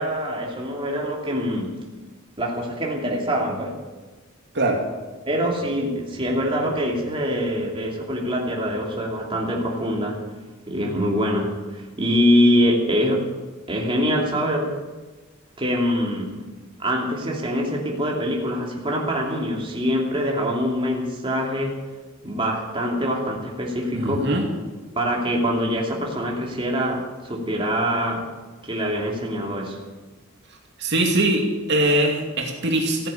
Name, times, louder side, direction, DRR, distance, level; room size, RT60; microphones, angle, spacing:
voice 1, 0.0-1.7 2.4-3.8 5.3-10.2 10.7-13.3 13.7-14.7 15.6-16.4 16.8-21.8 22.2-24.3 25.0-28.3 28.6-29.8, equal, 25° right, -2 dB, 2.7 m, -24 dB
voice 2, 23.9-24.4 30.8-33.1, right 1 dB, 55° right, 1 dB, 2.5 m, -22 dB
15.5 x 9.9 x 8.7 m, 1.3 s
head